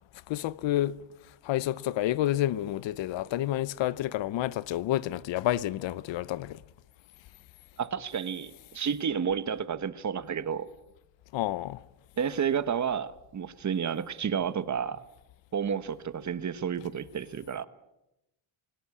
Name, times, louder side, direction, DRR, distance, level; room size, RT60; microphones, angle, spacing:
voice 1, 0.3-1.0 1.4-6.6 11.3-11.8, left 14 dB, 60° left, 0.8 m, -29 dB
voice 2, 7.8-10.7 12.2-15.0 15.5-17.6, right 7 dB, 35° right, 1.3 m, -31 dB
27.5 x 17.5 x 8.6 m
cardioid pair, 120°, 49 cm